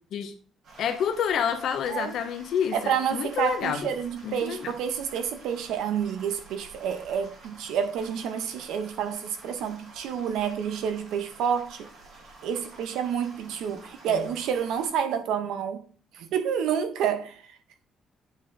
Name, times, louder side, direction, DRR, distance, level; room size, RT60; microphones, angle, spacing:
sound 1, 0.6-14.9, right 2 dB, 55° right, 2.1 m, -50 dB
voice 1, 0.8-3.9 4.2-4.7 14.1-14.3, left 8 dB, 60° left, 0.7 m, -28 dB
voice 2, 2.7-11.9 12.4-15.8 16.1-17.4, right 8 dB, 90° right, 0.8 m, -29 dB
8.0 x 3.3 x 3.9 m
cardioid pair, 170°, 0 cm